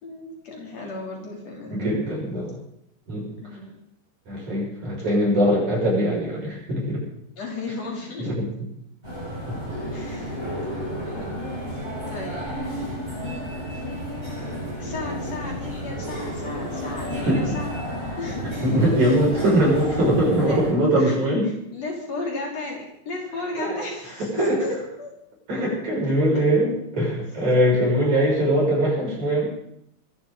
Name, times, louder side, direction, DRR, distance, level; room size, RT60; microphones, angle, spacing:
voice 1, 0.0-1.8 3.4-3.8 7.4-8.3 9.4-9.5 9.8-10.5 11.0-11.5 12.1-12.5 13.2-13.7 14.8-17.7 18.2-18.4 20.3-20.6 21.0-21.2 21.7-25.1 27.9-28.3, left 2 dB, 50° left, -1 dB, 4.2 m, -34 dB
voice 2, 1.7-2.5 3.1-3.3 4.3-7.0 8.2-8.5 9.5-9.6 17.1-17.6 18.6-21.5 23.6-23.8 24.3-24.6 25.5-29.5, right 1 dB, 60° right, -4 dB, 7.4 m, -22 dB
sound 1, 9.0-20.7, equal, 15° right, 6.4 m, -32 dB
24.5 x 11.5 x 4.0 m, 0.74 s
omnidirectional pair, 3.8 m